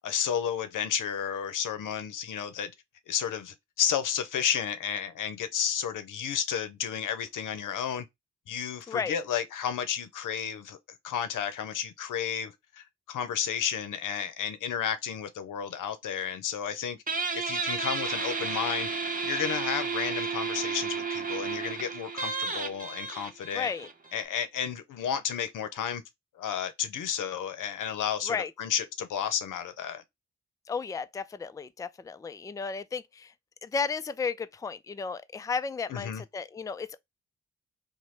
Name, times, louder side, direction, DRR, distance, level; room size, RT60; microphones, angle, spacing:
voice 1, 0.0-2.7 3.1-8.0 8.5-10.8 11.0-17.0 17.3-18.9 19.2-23.7 24.1-26.0 26.4-30.0 35.9-36.2, left 8 dB, 80° left, 0.7 m, -32 dB
Guitar, 17.1-24.3, right 4 dB, 25° right, 1.0 m, -32 dB
voice 2, 23.5-23.9 28.3-28.5 30.7-33.3 33.6-37.0, left 5 dB, 10° left, 0.4 m, -33 dB
3.1 x 2.2 x 4.2 m
supercardioid pair, 45°, 31 cm